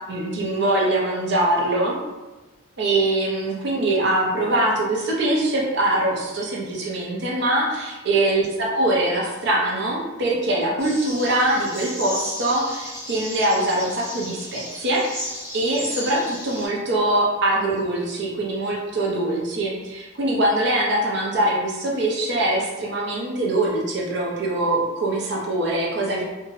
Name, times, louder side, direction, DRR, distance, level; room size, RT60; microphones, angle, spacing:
voice 1, 0.1-2.0 2.8-15.2 15.5-26.2, right 1 dB, 55° right, -3 dB, 0.6 m, -23 dB
sound 1, 10.8-16.7, equal, 15° right, 0.8 m, -34 dB
2.6 x 2.0 x 2.6 m, 1.1 s
head